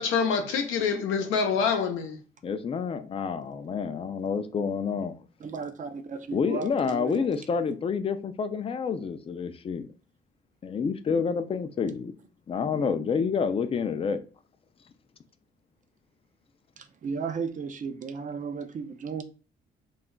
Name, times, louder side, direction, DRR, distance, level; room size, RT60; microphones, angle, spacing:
voice 1, 0.0-2.2, left 6 dB, 90° left, 0.6 m, -26 dB
voice 2, 2.4-5.2 6.3-9.9 10.6-12.1 12.5-14.2, left 6 dB, 30° left, 0.3 m, -28 dB
voice 3, 5.4-7.3 16.8-19.2, right 5 dB, 40° right, 0.4 m, -35 dB
2.3 x 2.1 x 3.7 m
cardioid pair, 90°, 20 cm